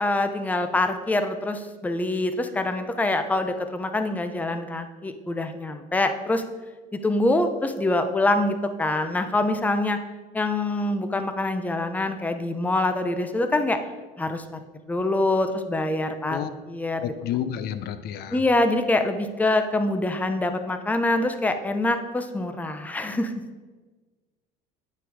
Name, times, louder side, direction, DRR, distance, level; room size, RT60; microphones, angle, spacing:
voice 1, 0.0-6.4 6.9-10.0 10.3-13.8 14.2-14.4 14.9-17.1 18.3-23.3, left 2 dB, 10° left, 8 dB, 0.7 m, -25 dB
voice 2, 17.0-18.4, left 10 dB, 60° left, 11 dB, 0.7 m, -30 dB
9.8 x 6.0 x 4.8 m, 1.3 s
cardioid pair, 125°, 19 cm